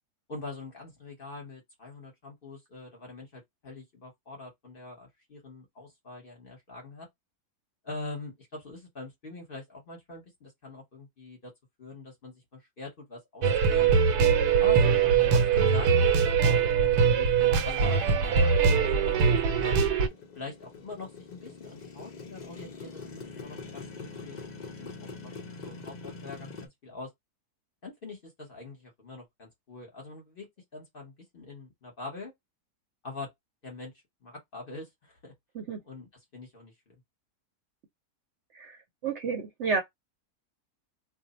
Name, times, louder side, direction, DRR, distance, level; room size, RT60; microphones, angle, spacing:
voice 1, 0.3-7.1 7.8-11.5 11.8-13.9 14.6-15.0 15.3-19.3 19.6-19.8 20.3-24.4 24.8-25.3 25.6-27.1 27.8-32.3 33.0-33.3 33.6-33.9 34.2-35.3 35.8-36.9, left 2 dB, 40° left, 1.0 m, -44 dB
sound 1, 13.4-20.1, right 6 dB, 85° right, 1.1 m, -22 dB
Motorcycle, 17.3-26.7, left 4 dB, 85° left, 0.3 m, -45 dB
voice 2, 38.5-39.8, right 5 dB, 60° right, 0.8 m, -31 dB
2.6 x 2.0 x 4.0 m
omnidirectional pair, 1.7 m